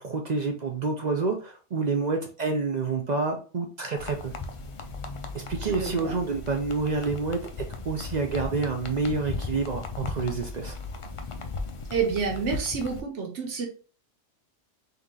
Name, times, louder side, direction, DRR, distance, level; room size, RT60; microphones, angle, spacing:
voice 1, 0.0-4.3 5.3-7.4 7.8-10.8, right 4 dB, 45° right, 3 dB, 0.6 m, -28 dB
sound 1, 4.0-13.0, left 3 dB, 55° left, 0.3 m, -37 dB
voice 2, 5.6-6.1 11.9-13.7, right 5 dB, 70° right, 1 dB, 1.3 m, -29 dB
3.8 x 2.9 x 3.7 m, 0.38 s
omnidirectional pair, 1.2 m